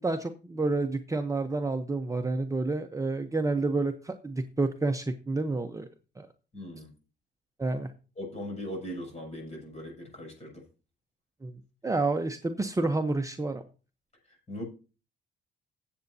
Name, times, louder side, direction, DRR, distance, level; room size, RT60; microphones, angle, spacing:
voice 1, 0.0-5.9 6.2-6.3 7.6-7.9 11.4-11.5 11.8-13.6, right 3 dB, 15° right, 6 dB, 0.8 m, -29 dB
voice 2, 6.5-6.9 8.2-10.6 14.5-14.6, left 1 dB, 35° left, 1 dB, 6.7 m, -39 dB
16.5 x 7.9 x 2.7 m, 0.34 s
cardioid pair, 90°, 20 cm